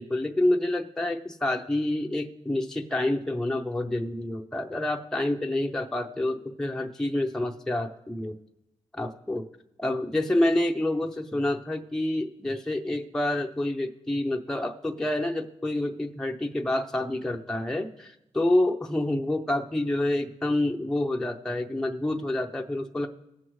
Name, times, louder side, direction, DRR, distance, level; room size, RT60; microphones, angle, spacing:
voice 1, 0.0-8.3 9.0-9.4 9.8-23.1, left 1 dB, 5° left, 2 dB, 0.6 m, -28 dB
19.0 x 7.6 x 3.1 m, 0.88 s
wide cardioid pair, 120°, 12 cm